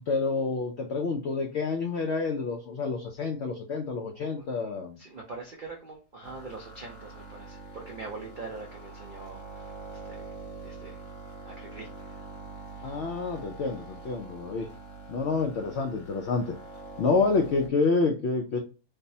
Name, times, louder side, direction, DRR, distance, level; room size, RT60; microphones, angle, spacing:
voice 1, 0.1-5.0 12.8-14.7 15.1-16.5 17.0-18.6, left 4 dB, 80° left, 2 dB, 0.6 m, -28 dB
voice 2, 5.0-9.7 10.0-10.3 10.6-11.0 11.4-12.3 12.7-13.0, right 3 dB, 75° right, 0 dB, 0.4 m, -43 dB
sound 1, 6.2-17.7, right 3 dB, 60° left, 1.1 m, -44 dB
3.3 x 2.0 x 2.6 m, 0.34 s
omnidirectional pair, 1.7 m